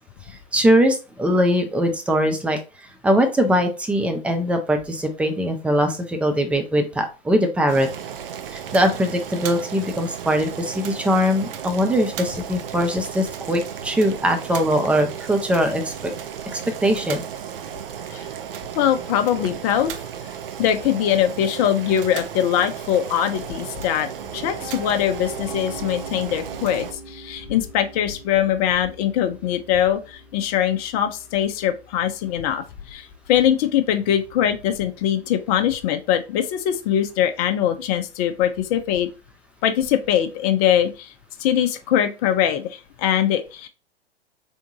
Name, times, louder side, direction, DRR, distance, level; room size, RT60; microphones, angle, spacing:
voice 1, 0.5-2.6 3.0-7.9 8.5-16.1 16.5-17.2, equal, 5° right, 5 dB, 0.3 m, -21 dB
Boiling, 7.7-26.9, right 8 dB, 60° right, 0.7 m, -34 dB
voice 2, 18.7-19.9 20.6-39.1 39.6-41.1 41.4-43.7, left 10 dB, 35° left, 7 dB, 0.6 m, -22 dB
Piano, 24.2-36.1, right 2 dB, 20° right, 1.4 m, -43 dB
3.6 x 3.5 x 2.8 m, 0.31 s
figure-of-eight pair, 100°, 31 cm